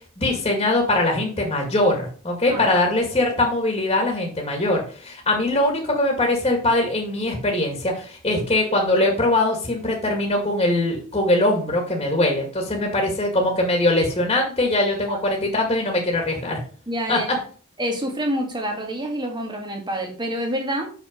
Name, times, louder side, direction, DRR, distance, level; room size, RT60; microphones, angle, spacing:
voice 1, 0.2-16.6 17.1-17.2, left 1 dB, 25° left, 2.0 m, -22 dB
voice 2, 16.9-17.3 17.8-20.9, equal, 20° right, 1.9 m, -27 dB
6.4 x 5.8 x 5.2 m
head